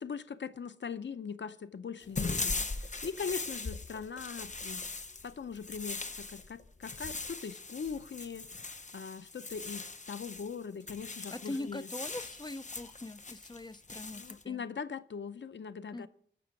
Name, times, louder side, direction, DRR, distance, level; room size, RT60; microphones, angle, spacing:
voice 1, 0.0-2.6 3.0-4.8 5.2-6.0 6.3-8.4 8.9-11.9 14.1-16.1, left 6 dB, 70° left, 0.6 m, -40 dB
sound 1, 2.0-10.5 10.8-14.4, left 3 dB, 40° left, 0.9 m, -40 dB
voice 2, 11.3-14.6 15.9-16.1, left 2 dB, 25° left, 0.5 m, -42 dB
13.5 x 6.1 x 5.9 m
wide cardioid pair, 75°, 19 cm